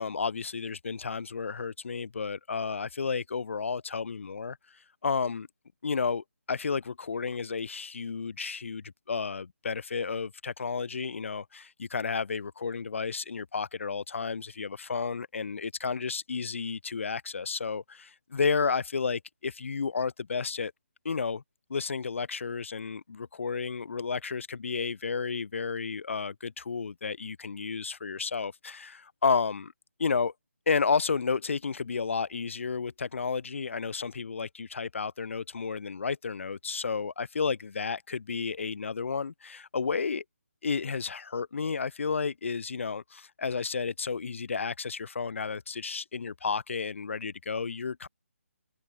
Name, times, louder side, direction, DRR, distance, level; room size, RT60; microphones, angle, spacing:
voice 1, 0.0-4.6 5.0-5.5 5.8-20.7 21.0-21.4 21.7-29.7 30.0-30.3 30.7-40.2 40.6-48.1, left 5 dB, 60° left, 4.1 m, -32 dB
hypercardioid pair, 165°, 8 cm